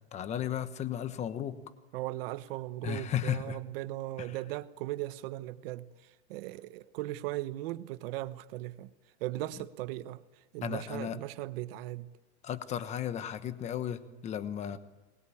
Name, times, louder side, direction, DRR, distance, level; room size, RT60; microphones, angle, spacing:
voice 1, 0.1-1.6 2.8-3.6 4.2-4.3 10.6-11.2 12.4-14.8, left 10 dB, 20° left, 1.1 m, -34 dB
voice 2, 1.9-8.9 9.2-10.2 10.5-12.1, right 16 dB, 60° right, 1.1 m, -38 dB
23.0 x 21.0 x 8.6 m
supercardioid pair, 170°, 33 cm